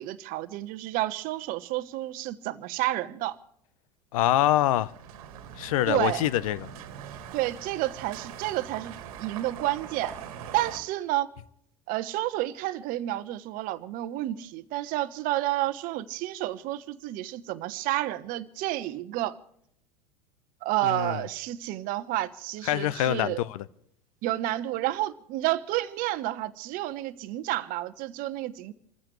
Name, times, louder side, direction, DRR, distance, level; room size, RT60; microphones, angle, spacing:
voice 1, 0.0-3.4 5.9-6.2 7.3-8.9 9.2-10.1 10.5-11.3 11.9-19.4 20.6-23.4 24.2-28.7, right 15 dB, 45° right, 1.1 m, -30 dB
voice 2, 4.1-4.9 5.6-6.7 20.8-21.2 22.7-23.6, left 13 dB, 60° left, 0.8 m, -25 dB
sound 1, 4.5-10.8, right 8 dB, 60° right, 1.8 m, -42 dB
28.0 x 15.0 x 3.2 m
figure-of-eight pair, 85°, 21 cm